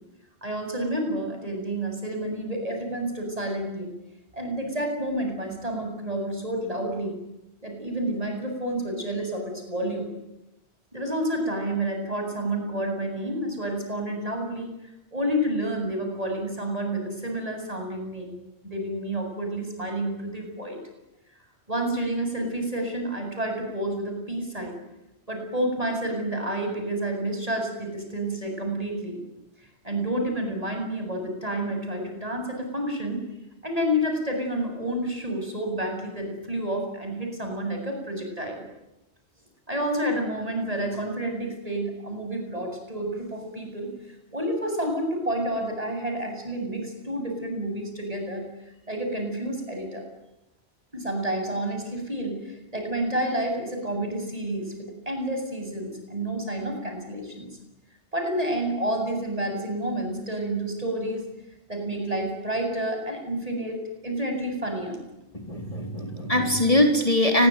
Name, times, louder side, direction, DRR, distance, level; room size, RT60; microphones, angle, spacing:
voice 1, 0.4-3.9 4.3-7.1 7.6-10.1 10.9-14.7 15.1-18.4 18.6-20.8 21.7-24.7 25.3-29.2 29.8-33.2 33.6-38.6 39.7-43.9 44.3-48.5 48.9-50.0 50.9-57.5 58.1-61.2 61.7-65.0, right 1 dB, 35° right, 3 dB, 8.1 m, -29 dB
voice 2, 65.3-67.5, left 1 dB, 30° left, 4 dB, 4.2 m, -22 dB
29.0 x 22.0 x 9.3 m, 0.91 s
omnidirectional pair, 1.1 m